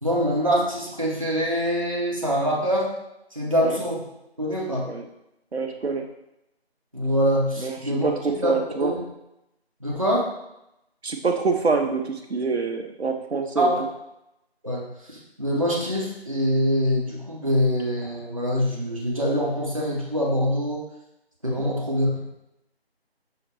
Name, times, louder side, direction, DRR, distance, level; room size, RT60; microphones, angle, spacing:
voice 1, 0.0-2.9 3.3-4.0 4.4-4.9 6.9-8.1 8.4-8.5 8.8-9.0 9.8-10.3 13.6-13.8 14.6-20.8 21.4-22.1, equal, 30° right, -4 dB, 0.7 m, -24 dB
voice 2, 5.5-6.1 7.6-7.7 8.0-8.9 11.0-13.7 21.6-21.8, right 4 dB, 80° right, 4 dB, 0.6 m, -26 dB
5.6 x 2.0 x 4.4 m, 0.86 s
figure-of-eight pair, 170°, 32 cm